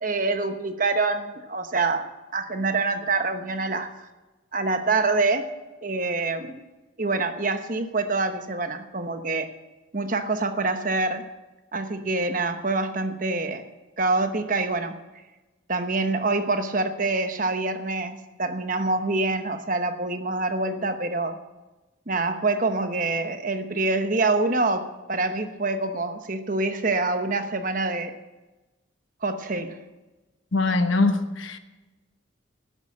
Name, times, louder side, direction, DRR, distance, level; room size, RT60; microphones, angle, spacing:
voice 1, 0.0-4.1 4.5-5.5 5.8-6.6 7.0-9.5 9.9-11.2 11.7-13.6 14.0-15.0 15.7-21.4 22.1-28.2 29.2-29.8, right 3 dB, 40° right, 1.0 m, -26 dB
voice 2, 30.5-31.6, left 3 dB, 75° left, 1.1 m, -22 dB
12.5 x 10.0 x 7.5 m
head